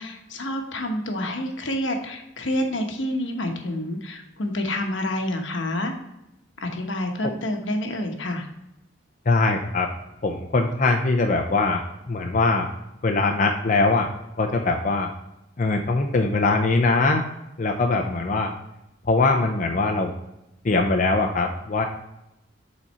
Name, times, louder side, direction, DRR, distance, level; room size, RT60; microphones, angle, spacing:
voice 1, 0.0-6.0 6.6-8.5, left 1 dB, 75° left, 4 dB, 1.1 m, -28 dB
voice 2, 9.3-9.9 10.2-11.8 12.1-12.7 13.0-14.1 14.4-15.1 15.6-17.2 17.6-18.5 19.1-20.1 20.6-21.8, left 3 dB, 40° left, 2 dB, 0.5 m, -21 dB
7.2 x 4.2 x 4.3 m, 0.89 s
head